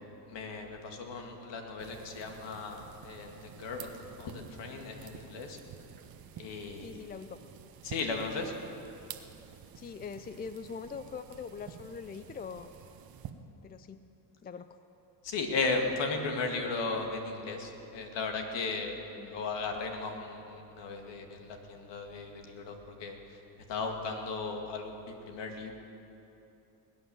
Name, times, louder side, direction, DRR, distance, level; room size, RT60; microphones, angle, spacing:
voice 1, 0.3-5.6 6.4-6.9 7.8-8.5 15.2-18.9 19.2-23.2 23.7-25.7, left 3 dB, 60° left, 3 dB, 2.4 m, -36 dB
sound 1, 1.8-13.3, right 9 dB, 45° right, 1.2 m, -50 dB
voice 2, 6.8-7.4 9.8-12.7 13.6-14.0 14.4-14.8 19.1-19.4, left 5 dB, 20° left, 11 dB, 0.4 m, -42 dB
20.5 x 9.3 x 7.2 m, 2.9 s
supercardioid pair, 80°, 49 cm